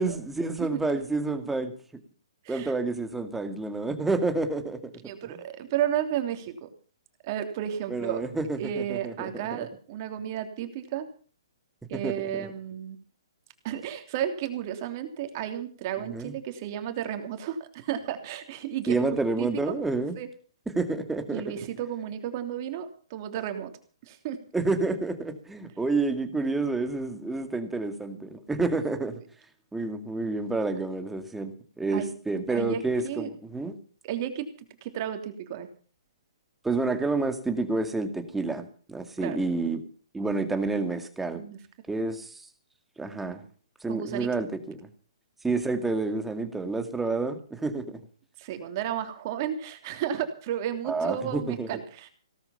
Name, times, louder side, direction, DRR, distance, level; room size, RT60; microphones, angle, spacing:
voice 1, 0.0-1.7 2.5-4.8 7.9-9.3 11.9-12.5 16.0-16.3 18.9-20.2 20.7-21.4 24.5-29.1 29.7-33.7 36.6-39.8 40.1-41.4 41.9-42.5 43.0-43.4 43.8-44.9 45.4-48.0 50.9-51.8, right 3 dB, 5° right, 8 dB, 2.1 m, -29 dB
voice 2, 5.0-6.7 7.2-8.2 8.6-11.1 11.9-13.0 13.6-19.0 19.4-19.8 20.2-20.3 21.3-23.7 24.0-24.4 31.9-32.1 32.5-33.3 34.0-35.7 39.2-39.4 41.3-41.6 43.9-44.3 48.4-52.1, right 10 dB, 40° right, 8 dB, 3.0 m, -33 dB
17.5 x 13.0 x 5.7 m, 0.41 s
hypercardioid pair, 130°, 3 cm